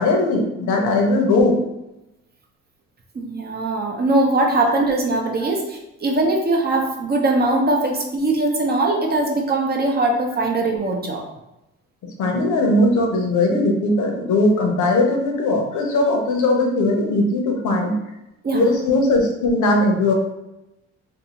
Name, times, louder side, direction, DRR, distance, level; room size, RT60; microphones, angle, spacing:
voice 1, 0.0-1.6 12.0-18.0 18.5-20.1, left 2 dB, 75° left, 2 dB, 0.7 m, -19 dB
voice 2, 3.1-11.2 18.4-18.7, right 2 dB, 30° right, 1 dB, 0.6 m, -21 dB
2.6 x 2.5 x 2.9 m, 0.92 s
cardioid pair, 90°, 30 cm